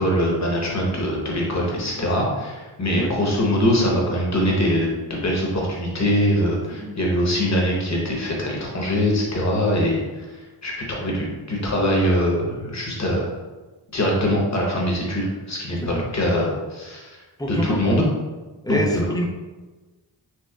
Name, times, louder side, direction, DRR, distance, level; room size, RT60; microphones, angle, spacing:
voice 1, 0.0-10.0 10.6-13.3 13.9-17.2 17.5-18.0 18.7-19.1, equal, 40° left, -2 dB, 0.9 m, -22 dB
voice 2, 17.4-17.8 18.6-19.2, equal, 10° left, 0 dB, 0.3 m, -26 dB
4.4 x 2.1 x 2.3 m, 1.2 s
cardioid pair, 65°, 44 cm